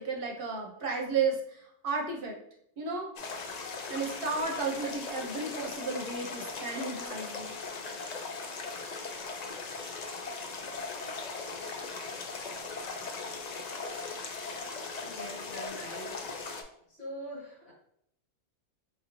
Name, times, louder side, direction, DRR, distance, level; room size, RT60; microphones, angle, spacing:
voice 1, 0.0-2.4 2.8-3.1 3.9-7.5, right 4 dB, 55° right, 0 dB, 0.9 m, -33 dB
sound 1, 3.2-16.6, left 4 dB, 60° left, 0.4 m, -39 dB
voice 2, 14.7-16.4 16.9-17.7, equal, 75° left, -7 dB, 2.0 m, -44 dB
4.7 x 2.6 x 2.9 m, 0.72 s
omnidirectional pair, 1.2 m